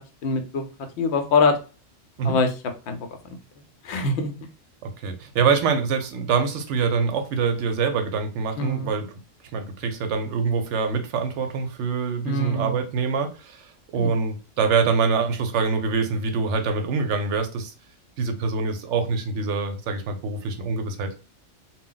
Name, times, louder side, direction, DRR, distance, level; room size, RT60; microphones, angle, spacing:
voice 1, 0.2-0.7 1.0-1.6 2.2-2.5 2.9-3.0 3.8-4.4 8.6-8.9 12.2-12.7 14.0-14.1, left 3 dB, 65° left, 6 dB, 0.8 m, -23 dB
voice 2, 4.8-9.2 9.5-17.7 18.2-21.2, right 5 dB, 70° right, 6 dB, 0.8 m, -25 dB
2.2 x 2.0 x 3.7 m, 0.33 s
omnidirectional pair, 1.3 m